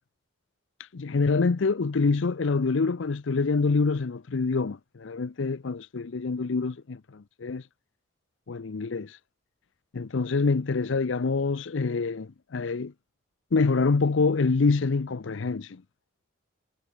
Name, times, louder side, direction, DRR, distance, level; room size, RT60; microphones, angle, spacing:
voice 1, 0.8-7.6 8.5-9.2 9.9-12.9 13.5-15.8, left 4 dB, 65° left, 0.6 m, -26 dB
head